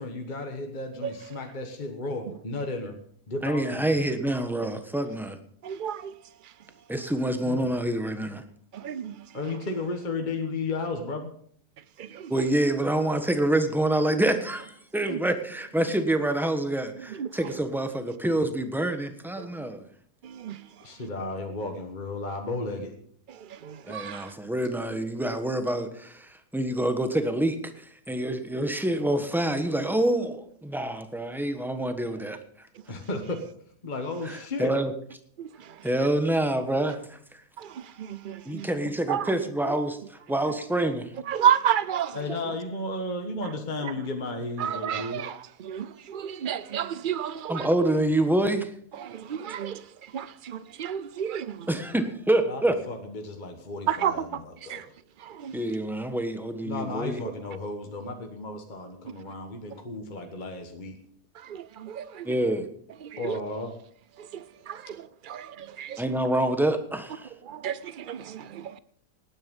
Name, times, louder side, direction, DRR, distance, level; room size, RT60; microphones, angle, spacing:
voice 1, 0.0-2.9 3.3-3.9 7.4-7.7 9.3-11.3 20.8-23.0 32.9-33.4 33.8-34.7 42.1-45.2 52.4-52.6 52.9-54.8 56.6-61.0 63.2-63.7, left 2 dB, 30° left, 1.5 m, -34 dB
voice 2, 3.4-5.4 6.9-8.4 12.3-19.8 23.9-32.4 34.2-34.9 35.8-37.2 38.4-41.1 47.5-48.7 51.7-52.8 55.5-57.2 62.2-62.7 66.0-67.3, right 1 dB, ahead, 1.2 m, -27 dB
voice 3, 5.6-6.1 8.7-9.3 12.0-12.3 15.1-15.2 17.2-17.3 19.4-19.5 20.2-20.6 23.3-24.3 35.4-35.8 37.6-38.7 39.1-39.3 41.3-42.2 43.8-43.9 44.6-47.7 49.0-51.7 53.9-54.2 54.7-54.9 55.2-55.6 61.4-62.3 63.0-63.4 64.2-66.0 67.4-68.8, right 9 dB, 65° right, 0.5 m, -31 dB
18.5 x 9.9 x 5.4 m
omnidirectional pair, 1.7 m